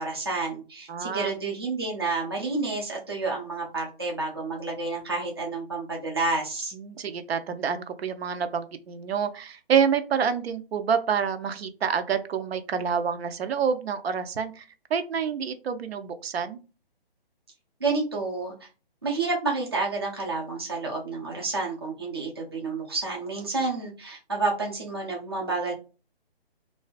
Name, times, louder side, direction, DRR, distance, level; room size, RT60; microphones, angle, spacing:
voice 1, 0.0-6.7 17.8-18.7 19.0-25.7, right 3 dB, 25° right, -2 dB, 0.4 m, -29 dB
voice 2, 0.9-1.4 6.7-14.6 14.9-16.6, right 7 dB, 80° right, 9 dB, 0.5 m, -27 dB
2.4 x 2.2 x 2.4 m, 0.33 s
hypercardioid pair, 165°, 30 cm